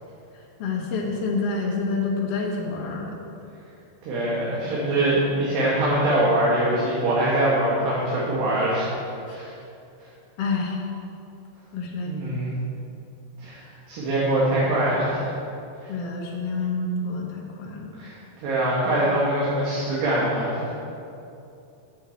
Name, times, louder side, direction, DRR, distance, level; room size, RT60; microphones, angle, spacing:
voice 1, 0.6-3.1 10.4-10.8 11.7-12.2 15.9-17.9, left 3 dB, 85° left, -2 dB, 1.3 m, -28 dB
voice 2, 4.0-8.9 9.3-9.5 12.1-12.5 13.4-13.6 13.9-15.3 15.8-15.9 18.0-20.7, right 1 dB, 65° right, -7 dB, 3.3 m, -23 dB
8.7 x 7.0 x 7.9 m, 2.7 s
omnidirectional pair, 4.6 m